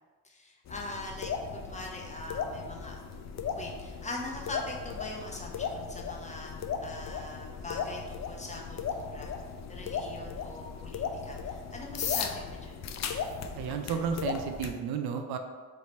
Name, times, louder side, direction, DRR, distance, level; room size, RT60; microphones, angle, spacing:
voice 1, 0.2-2.9 3.5-9.3 9.7-12.8, left 2 dB, 20° left, -1 dB, 0.9 m, -42 dB
sound 1, 0.7-14.7, left 6 dB, 45° left, 0.4 m, -37 dB
voice 2, 13.5-15.4, right 6 dB, 75° right, 5 dB, 0.5 m, -32 dB
3.2 x 2.8 x 4.3 m, 1.4 s
supercardioid pair, 65°, 38 cm